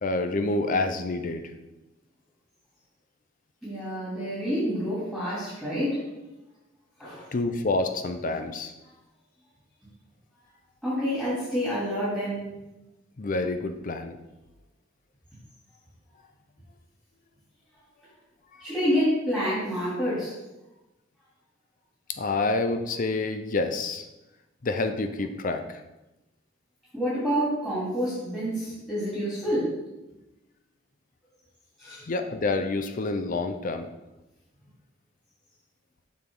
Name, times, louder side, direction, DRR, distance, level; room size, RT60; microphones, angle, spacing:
voice 1, 0.0-1.5 7.3-8.7 13.2-14.2 18.5-18.7 22.1-24.1 24.6-25.8 32.1-33.9, left 3 dB, 45° left, 7 dB, 0.5 m, -28 dB
voice 2, 3.6-6.0 7.0-7.3 10.8-12.5 18.6-20.3 26.9-29.7 31.8-32.1, equal, 5° left, -12 dB, 2.8 m, -28 dB
7.5 x 6.0 x 3.7 m, 1.0 s
head